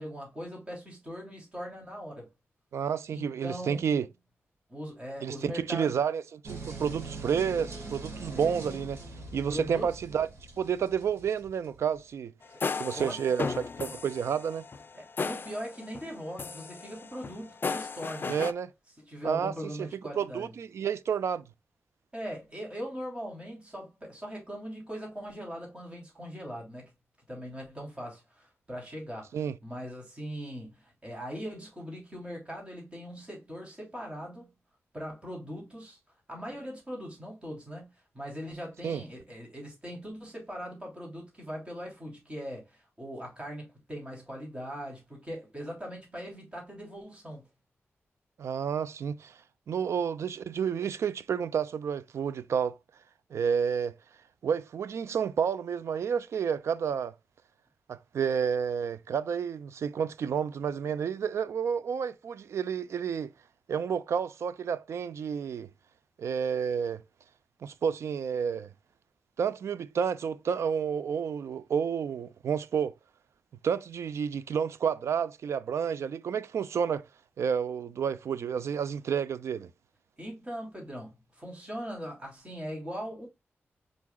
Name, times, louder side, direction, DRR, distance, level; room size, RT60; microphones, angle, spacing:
voice 1, 0.0-2.3 3.1-4.0 4.7-6.0 8.3-8.5 9.5-10.0 12.5-12.6 12.9-13.3 14.9-18.4 19.0-20.5 22.1-26.9 27.3-29.3 29.6-34.5 34.9-36.0 36.3-37.9 38.1-47.5 80.2-83.3, equal, 25° right, 3.0 m, -40 dB
voice 2, 2.7-4.1 5.2-9.0 9.3-10.3 10.6-12.3 12.8-14.6 18.3-18.7 19.2-19.5 19.8-19.9 20.1-21.4 29.3-29.6 38.8-39.0 48.4-49.4 49.7-52.8 53.3-53.9 54.4-57.1 57.9-63.3 63.7-65.7 66.2-67.0 67.6-68.7 69.4-72.9 73.6-77.0 77.4-79.7, right 7 dB, 90° right, 0.4 m, -30 dB
sound 1, 6.4-12.0, right 3 dB, 70° right, 2.8 m, -42 dB
sound 2, 12.4-16.1 16.4-18.5, left 4 dB, 50° left, 0.5 m, -35 dB
5.1 x 4.7 x 2.2 m
wide cardioid pair, 85°, 5 cm